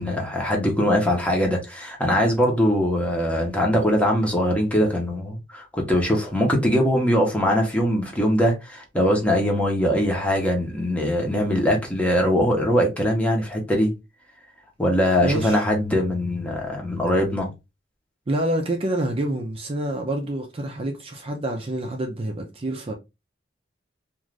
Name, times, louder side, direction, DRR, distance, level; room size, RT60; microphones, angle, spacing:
voice 1, 0.0-13.9 14.8-17.5, equal, 5° left, 0.8 m, -22 dB
voice 2, 15.2-15.6 18.3-22.9, right 1 dB, 30° right, 0.5 m, -27 dB
2.5 x 2.4 x 3.1 m
head